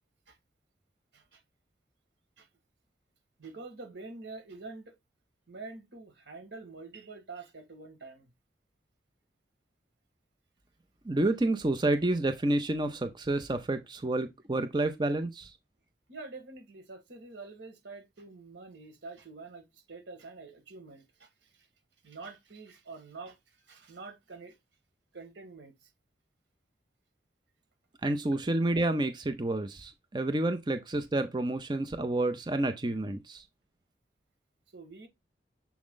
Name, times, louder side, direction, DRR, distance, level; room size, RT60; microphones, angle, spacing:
voice 1, 3.4-5.0 5.5-8.3 16.1-21.7 22.0-24.6 25.1-25.9 34.7-35.1, right 3 dB, 90° right, 1.7 m, -46 dB
voice 2, 11.1-15.5 28.0-33.4, right 2 dB, 25° right, 0.6 m, -29 dB
7.1 x 3.7 x 3.7 m
head